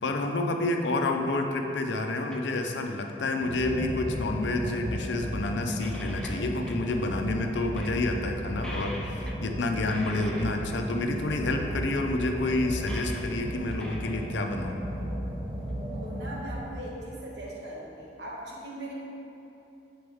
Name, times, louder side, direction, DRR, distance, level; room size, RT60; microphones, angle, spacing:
voice 1, 0.0-14.9, left 2 dB, 85° left, 4 dB, 0.6 m, -29 dB
sound 1, 2.3-2.9 3.2-3.7 4.7-4.9 5.2-5.3 5.7-7.0 7.4-7.5 7.8-8.0 8.6-9.4 9.7-10.7 11.8-11.9 12.8-13.3 13.7-14.7 15.3-15.4 16.3-16.4, left 1 dB, 5° left, 0.5 m, -44 dB
sound 2, 3.4-16.7, equal, 30° right, 0.7 m, -35 dB
voice 2, 16.0-18.9, right 1 dB, 75° right, -5 dB, 1.3 m, -40 dB
7.7 x 4.3 x 3.5 m, 2.8 s
head